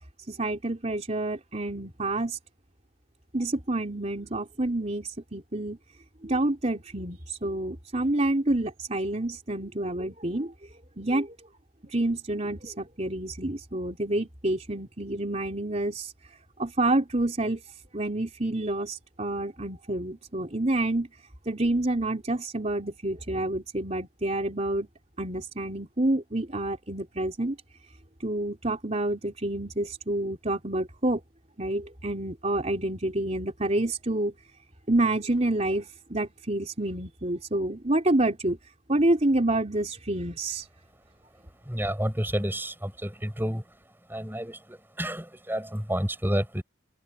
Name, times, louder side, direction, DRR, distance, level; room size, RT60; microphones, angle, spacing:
voice 1, 0.3-2.4 3.3-5.8 6.2-10.5 11.0-11.3 11.9-16.1 16.6-17.6 17.9-21.1 21.5-24.9 25.2-27.6 28.2-31.2 31.6-34.3 34.9-38.6 38.9-40.6, right 1 dB, 30° right, 3.8 m, -28 dB
voice 2, 41.7-43.6 44.1-46.6, equal, 10° right, 7.5 m, -30 dB
head